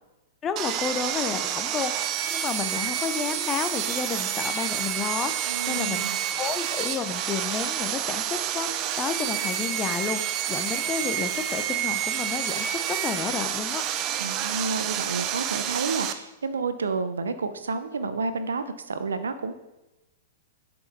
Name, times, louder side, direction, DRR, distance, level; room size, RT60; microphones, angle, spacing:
voice 1, 0.4-6.0 6.4-13.8, left 6 dB, 25° left, 9 dB, 0.8 m, -31 dB
Sawing, 0.6-16.1, right 10 dB, 40° right, 0.7 m, -29 dB
voice 2, 5.5-6.2 14.2-19.5, right 4 dB, 85° right, 11 dB, 0.7 m, -30 dB
10.5 x 5.4 x 4.3 m, 1.0 s
hypercardioid pair, 110°, 0 cm